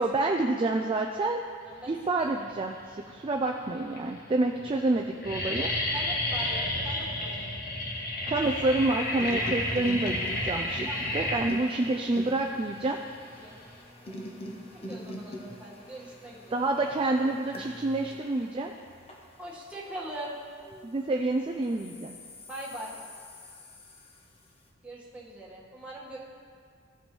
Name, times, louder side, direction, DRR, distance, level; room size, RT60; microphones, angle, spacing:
voice 1, 0.0-1.5 1.9-2.8 3.1-5.7 8.3-13.0 16.5-18.7 20.8-22.2, right 2 dB, 25° right, 2 dB, 0.3 m, -28 dB
voice 2, 1.6-2.3 4.8-5.1 5.9-7.5 10.9-11.5 13.4-13.6 14.1-14.2 14.7-16.6 17.1-17.2 19.4-20.3 22.5-22.9 24.8-26.2, right 1 dB, 5° right, -7 dB, 1.4 m, -42 dB
sound 1, 2.6-3.2 3.9-4.0 4.2-4.6 4.9-13.8, left 1 dB, 45° left, 1.3 m, -31 dB
sound 2, 8.4-21.0 21.6-24.5, equal, 30° left, 0.7 m, -45 dB
15.0 x 5.2 x 3.1 m, 2.1 s
head